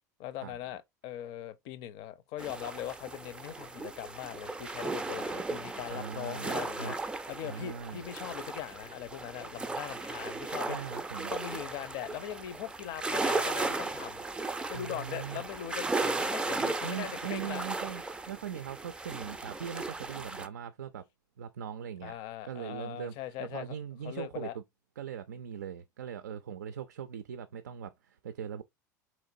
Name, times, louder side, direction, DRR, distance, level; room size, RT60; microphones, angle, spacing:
voice 1, 0.2-10.8 11.3-14.2 14.7-17.6 22.0-23.8 24.0-24.6, left 11 dB, 55° left, 0.5 m, -41 dB
sound 1, 2.4-20.5, right 3 dB, 10° right, 0.4 m, -36 dB
voice 2, 5.9-7.0 7.4-8.0 10.7-11.3 14.7-15.4 16.8-21.1 21.4-22.1 22.4-23.1 23.4-24.6 25.0-28.6, right 8 dB, 75° right, 0.4 m, -40 dB
4.1 x 3.0 x 2.5 m
figure-of-eight pair, 75°, 10 cm